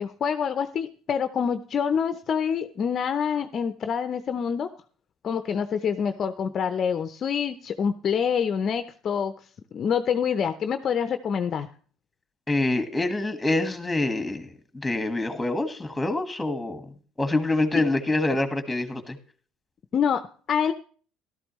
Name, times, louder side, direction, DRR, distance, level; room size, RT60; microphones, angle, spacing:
voice 1, 0.0-4.7 5.2-9.3 9.7-11.7 19.9-20.7, left 7 dB, 45° left, 9 dB, 0.6 m, -26 dB
voice 2, 12.5-16.8 17.2-19.2, left 2 dB, 10° left, 8 dB, 1.6 m, -26 dB
13.5 x 12.5 x 3.1 m, 0.43 s
supercardioid pair, 90°, 0 cm